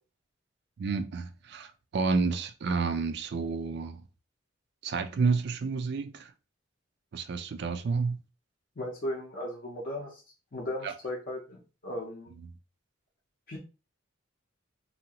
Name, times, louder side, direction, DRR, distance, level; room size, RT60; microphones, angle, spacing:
voice 1, 0.8-4.0 4.8-6.3 7.1-8.2 10.8-10.9, right 4 dB, 55° right, 0.4 m, -30 dB
voice 2, 8.8-10.2 10.5-12.3 13.5-13.6, left 1 dB, 45° left, 0.6 m, -36 dB
2.7 x 2.4 x 2.8 m
head